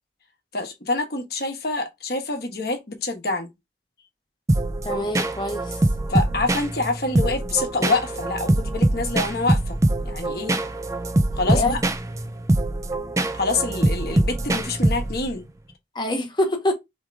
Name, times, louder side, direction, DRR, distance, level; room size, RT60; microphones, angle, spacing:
voice 1, 0.5-3.5 6.1-9.8 10.0-10.6 11.3-11.8 13.3-15.5, left 3 dB, 55° left, 1.2 m, -26 dB
sound 1, 4.5-15.4, right 1 dB, 15° right, 0.4 m, -23 dB
voice 2, 4.8-5.8 11.4-11.8 15.9-16.7, left 1 dB, 25° left, 0.9 m, -25 dB
3.7 x 3.1 x 4.6 m
head